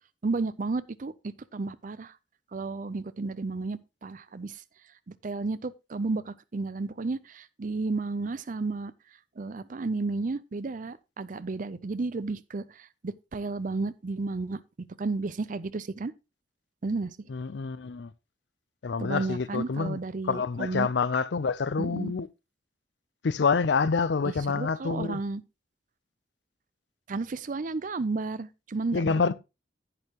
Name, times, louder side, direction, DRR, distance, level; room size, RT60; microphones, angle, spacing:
voice 1, 0.2-2.1 2.5-4.6 5.1-8.9 9.4-16.1 16.8-17.3 19.0-20.9 21.8-22.1 24.2-25.4 27.1-29.3, right 3 dB, 45° right, 0.5 m, -33 dB
voice 2, 17.3-18.1 18.8-20.0 20.3-22.3 23.2-25.2 28.9-29.3, left 5 dB, 70° left, 0.5 m, -27 dB
11.0 x 8.7 x 2.9 m
head